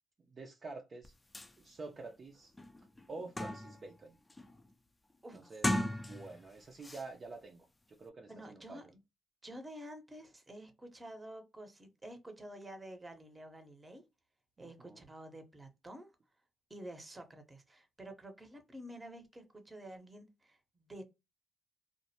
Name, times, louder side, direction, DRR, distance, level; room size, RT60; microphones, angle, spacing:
voice 1, 0.3-1.2 1.6-2.5 3.1-4.2 5.3-8.8 14.6-15.1, right 3 dB, 45° right, 0.4 m, -48 dB
sound 1, 1.0-1.1 1.3-1.5 2.1-2.2 2.6-3.9 4.3-4.7 5.5-6.5 6.8-7.0, left 1 dB, 20° left, 0.4 m, -37 dB
voice 2, 8.3-9.0 9.4-14.0 14.6-16.1 16.7-21.0, right 1 dB, 20° right, 0.8 m, -50 dB
2.4 x 2.0 x 2.8 m
cardioid pair, 70°, 0 cm